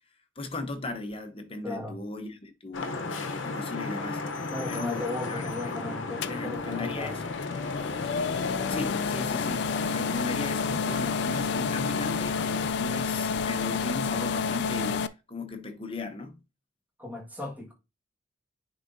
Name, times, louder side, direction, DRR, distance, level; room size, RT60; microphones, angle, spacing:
voice 1, 0.4-4.2 4.7-5.8 6.3-7.4 8.7-12.4 12.7-16.3, left 3 dB, 30° left, 0.9 m, -37 dB
voice 2, 1.6-2.0 4.5-7.2 17.0-17.7, left 2 dB, 10° right, 1.6 m, -36 dB
Vehicle horn car horn honking / Traffic noise roadway noise, 2.7-12.7, left 3 dB, 75° left, 0.8 m, -35 dB
sound 1, 6.2-15.1, left 5 dB, 60° left, 0.3 m, -30 dB
9.7 x 3.8 x 2.6 m
head